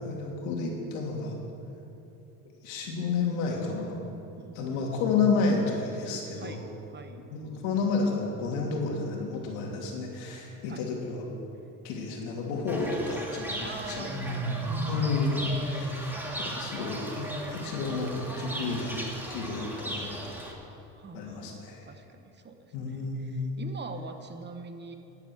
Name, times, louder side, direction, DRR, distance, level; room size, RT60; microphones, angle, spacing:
voice 1, 0.0-1.3 2.6-4.0 4.5-6.6 7.3-11.2 11.8-14.1 14.8-16.1 16.4-19.0 19.3-20.3 21.1-21.9 22.7-23.5, left 4 dB, 85° left, -1 dB, 2.9 m, -31 dB
voice 2, 4.4-4.9 6.3-7.2 10.7-10.9 13.6-14.8 21.0-25.0, right 4 dB, 25° right, 7 dB, 1.0 m, -44 dB
Fowl / Bird, 12.7-20.5, right 1 dB, 5° right, 2.1 m, -35 dB
13.0 x 8.9 x 8.1 m, 2.9 s
cardioid pair, 120°, 41 cm